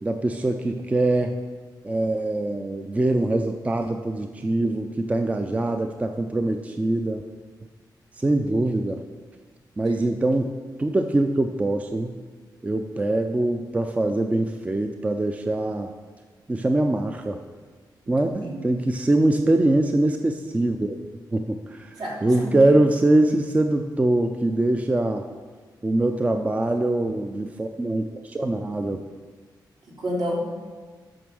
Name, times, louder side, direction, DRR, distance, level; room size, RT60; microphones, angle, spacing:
voice 1, 0.0-1.4 1.8-7.2 8.2-9.0 9.8-10.5 10.8-12.2 12.6-15.9 16.5-17.4 18.1-21.0 21.3-21.9 22.2-25.2 25.8-29.0, right 2 dB, 20° right, 5 dB, 0.4 m, -23 dB
voice 2, 18.2-18.6 22.0-22.6 30.0-30.4, equal, 70° right, -4 dB, 2.9 m, -30 dB
8.8 x 6.0 x 6.3 m, 1.4 s
wide cardioid pair, 140°, 8 cm